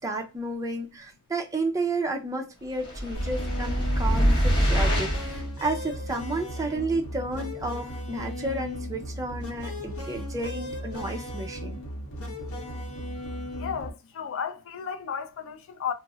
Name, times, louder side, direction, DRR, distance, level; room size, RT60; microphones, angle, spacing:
voice 1, 0.0-11.8, right 2 dB, 15° right, 0.5 m, -32 dB
sound 1, 2.8-5.4, equal, 25° left, 1.1 m, -24 dB
sound 2, 3.1-13.9, equal, 80° left, 0.8 m, -36 dB
voice 2, 13.3-15.9, left 7 dB, 65° left, 0.4 m, -34 dB
2.4 x 2.0 x 3.7 m
head